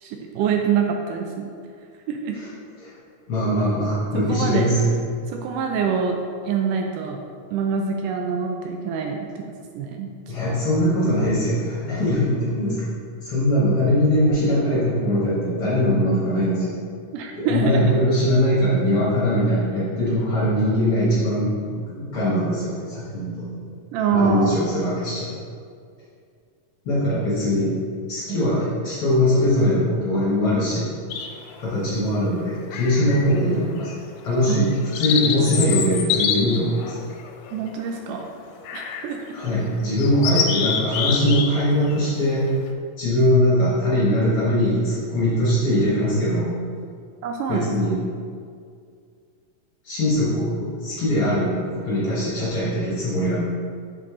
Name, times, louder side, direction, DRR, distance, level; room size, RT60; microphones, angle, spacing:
voice 1, 0.0-1.5 2.1-2.4 4.1-4.7 5.3-6.2 6.5-7.2 7.5-9.3 9.8-10.1 17.1-17.9 23.9-24.6 34.5-34.8 37.5-38.3 38.7-39.2 47.2-47.7, right 6 dB, 80° right, 2 dB, 2.0 m, -25 dB
voice 2, 3.3-4.9 10.3-12.9 13.2-16.7 17.4-23.6 24.1-25.3 26.8-27.8 28.1-30.9 31.6-33.9 34.2-37.0 39.3-42.5 43.0-46.5 47.5-48.0 49.8-53.4, equal, 50° left, -9 dB, 1.8 m, -21 dB
sound 1, 31.1-31.6 32.7-33.4 33.8-33.9 34.5-38.0 38.7-39.1 39.5-39.6 40.0-41.5 41.8-42.1, left 7 dB, 85° left, 2.2 m, -26 dB
6.7 x 5.2 x 3.6 m, 2.2 s
omnidirectional pair, 3.9 m